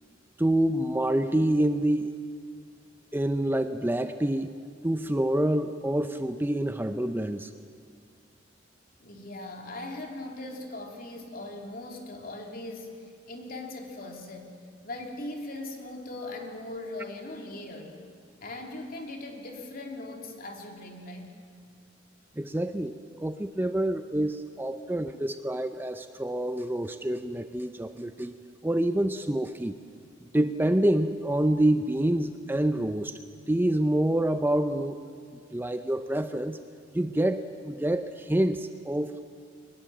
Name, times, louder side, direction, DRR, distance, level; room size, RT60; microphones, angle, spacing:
voice 1, 0.4-2.1 3.1-4.5 4.8-7.5 22.4-28.4 28.6-29.8 30.3-33.2 33.5-35.0 35.5-36.6 36.9-39.2, right 1 dB, 10° right, 9 dB, 0.6 m, -27 dB
voice 2, 9.0-14.5 14.8-18.0 18.4-21.3, left 2 dB, 50° left, 2 dB, 3.0 m, -39 dB
23.0 x 20.5 x 7.5 m, 2.1 s
head